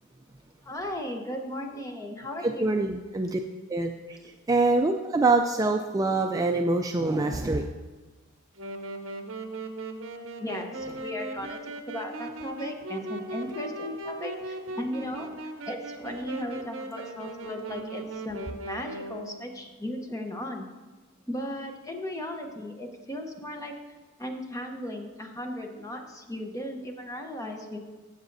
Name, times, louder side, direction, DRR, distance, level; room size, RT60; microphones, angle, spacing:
voice 1, 0.6-2.9 10.4-15.3 15.7-20.7 21.3-23.7 24.2-27.8, left 1 dB, 15° left, 3 dB, 0.9 m, -36 dB
voice 2, 2.4-3.4 3.7-4.2 4.5-7.7, right 2 dB, 15° right, 4 dB, 0.3 m, -25 dB
Wind instrument woodwind instrument, 8.6-19.5, right 2 dB, 65° right, 0.9 m, -38 dB
14.5 x 7.1 x 2.7 m, 1.3 s
head